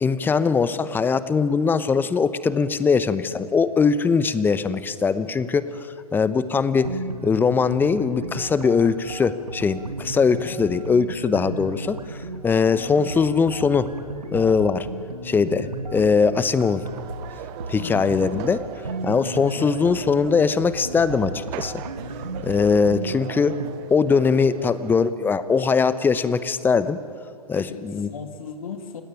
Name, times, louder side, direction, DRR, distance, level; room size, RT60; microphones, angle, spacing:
voice 1, 0.0-5.7 6.1-12.0 12.4-13.9 14.3-14.9 15.2-16.8 17.7-18.6 19.0-21.8 22.4-23.6 23.9-27.0 27.5-28.1, left 5 dB, 10° left, 14 dB, 0.9 m, -21 dB
sound 1, 6.7-23.7, right 2 dB, 90° right, 2.4 m, -35 dB
voice 2, 10.3-10.6 12.7-13.1 17.8-18.1 19.4-19.7 27.5-29.0, left 6 dB, 65° left, 6 dB, 2.4 m, -37 dB
sound 2, 16.9-25.1, right 13 dB, 35° right, 1.0 m, -40 dB
29.5 x 17.0 x 9.3 m, 2.3 s
figure-of-eight pair, 120°, 20 cm